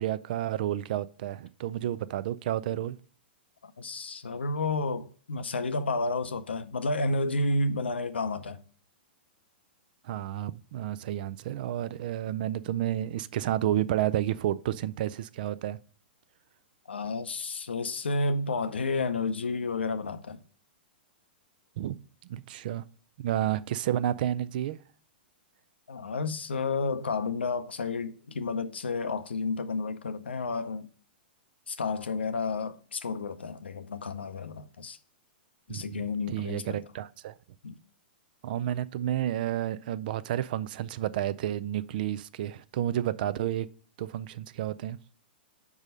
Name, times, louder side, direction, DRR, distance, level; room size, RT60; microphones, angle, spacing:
voice 1, 0.0-3.0 10.0-15.8 21.8-22.0 22.2-22.8 23.2-24.8 35.7-36.0 36.3-37.3 38.4-43.7 44.0-45.0, right 12 dB, 55° right, 0.4 m, -31 dB
voice 2, 3.6-8.6 16.9-20.4 25.9-30.9 31.7-35.0 35.7-36.8 37.6-37.7, left 3 dB, 85° left, 0.6 m, -31 dB
5.4 x 4.7 x 5.2 m
hypercardioid pair, 115°, 6 cm